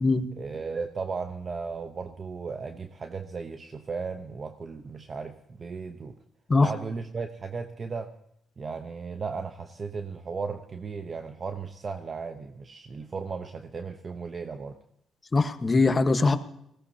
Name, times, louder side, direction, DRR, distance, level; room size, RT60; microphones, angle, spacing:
voice 1, 0.4-6.1 6.6-8.1 8.6-14.8, right 5 dB, 40° right, 7 dB, 1.0 m, -36 dB
voice 2, 15.3-16.4, left 3 dB, 30° left, 8 dB, 1.3 m, -21 dB
19.5 x 17.0 x 2.9 m, 0.75 s
cardioid pair, 90°, 0 cm